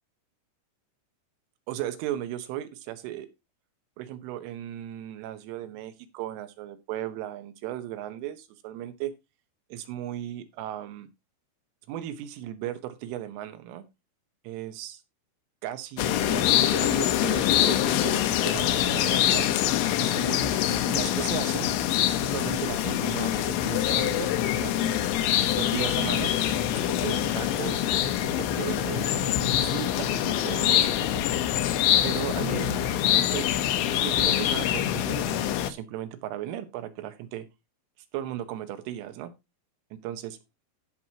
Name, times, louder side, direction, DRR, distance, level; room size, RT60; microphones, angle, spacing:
voice 1, 1.7-3.3 4.0-9.1 9.7-11.1 11.9-13.8 14.5-15.0 15.6-19.5 20.0-21.7 22.2-25.0 25.4-26.5 26.9-27.8 28.4-31.2 32.0-33.5 33.9-37.5 38.1-39.3 39.9-40.4, right 12 dB, 80° right, 10 dB, 3.5 m, -36 dB
sound 1, 16.0-35.7, left 11 dB, 75° left, 3.0 m, -25 dB
15.5 x 6.1 x 2.9 m, 0.23 s
omnidirectional pair, 5.8 m